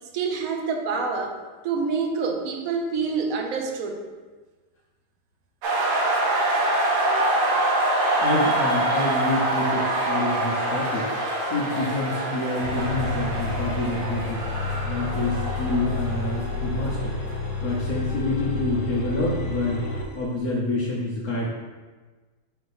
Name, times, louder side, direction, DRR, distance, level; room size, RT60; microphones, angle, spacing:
voice 1, 0.1-1.4 1.6-4.0, right 5 dB, 65° right, 3 dB, 0.9 m, -27 dB
sound 1, 5.6-17.3, right 1 dB, 90° right, 1.7 m, -25 dB
voice 2, 8.2-11.1 11.5-14.4 14.8-17.2 17.6-19.8 20.1-21.5, left 2 dB, 60° left, -5 dB, 1.2 m, -27 dB
sound 2, 12.6-20.1, left 3 dB, 85° left, 1.7 m, -30 dB
5.0 x 3.5 x 5.4 m, 1.3 s
omnidirectional pair, 2.1 m